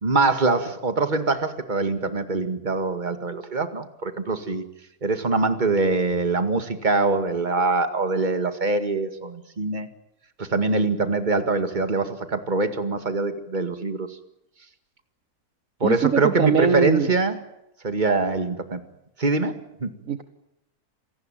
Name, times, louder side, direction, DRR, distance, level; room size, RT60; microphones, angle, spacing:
voice 1, 0.0-4.6 5.0-9.9 10.4-14.1 15.8-17.4 17.8-18.8 19.2-19.9, right 3 dB, 30° right, 9 dB, 2.1 m, -24 dB
voice 2, 15.8-17.1 20.1-20.2, right 6 dB, 60° right, 11 dB, 1.5 m, -21 dB
27.5 x 19.0 x 9.1 m, 0.84 s
omnidirectional pair, 1.6 m